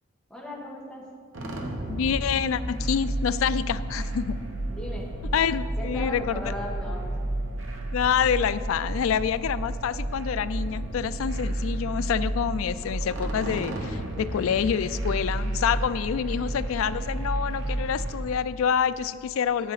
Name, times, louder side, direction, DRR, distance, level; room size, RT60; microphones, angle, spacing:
voice 1, 0.3-1.0 4.7-5.1 5.8-7.0, left 1 dB, 5° left, -5 dB, 1.6 m, -37 dB
sound 1, 1.3-18.2, right 1 dB, 65° right, 1.1 m, -31 dB
voice 2, 1.9-4.4 5.3-6.4 7.9-19.7, left 7 dB, 85° left, 15 dB, 0.3 m, -27 dB
9.2 x 8.3 x 4.0 m, 2.1 s
head